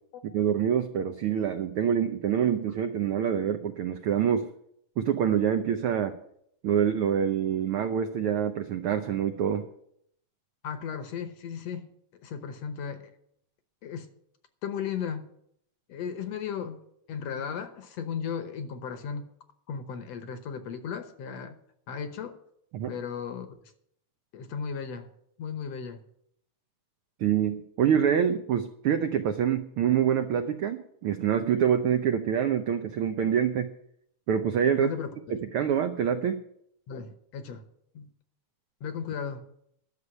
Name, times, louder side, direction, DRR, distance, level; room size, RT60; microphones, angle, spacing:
voice 1, 0.3-4.5 5.0-6.1 6.6-9.7 22.7-22.9 27.2-33.7 34.3-34.9 35.3-36.4, right 8 dB, 85° right, 7 dB, 1.2 m, -26 dB
voice 2, 10.6-11.9 12.2-13.1 13.8-14.1 14.6-15.3 15.9-19.3 19.7-21.5 21.9-22.4 22.9-23.6 24.3-25.1 25.4-26.0 34.8-35.2 36.9-37.6 38.0-38.1 38.8-39.5, left 7 dB, 65° left, 9 dB, 1.9 m, -35 dB
11.5 x 6.8 x 9.5 m, 0.71 s
omnidirectional pair, 3.4 m